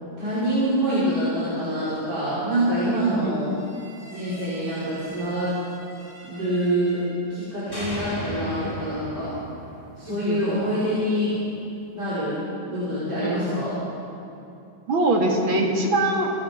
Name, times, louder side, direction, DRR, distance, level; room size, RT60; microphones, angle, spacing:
voice 1, 0.2-3.5 4.1-5.6 6.2-7.0 7.3-9.4 10.0-11.4 11.9-12.4 12.6-13.7, equal, 55° right, -11 dB, 6.2 m, -25 dB
voice 2, 3.0-3.4 10.1-10.6 13.2-13.4 14.9-16.3, right 2 dB, 85° right, 0 dB, 3.4 m, -23 dB
sound 1, 3.6-7.4 7.7-10.7, left 1 dB, 10° left, 3.4 m, -39 dB
29.0 x 17.0 x 5.3 m, 2.6 s
omnidirectional pair, 2.1 m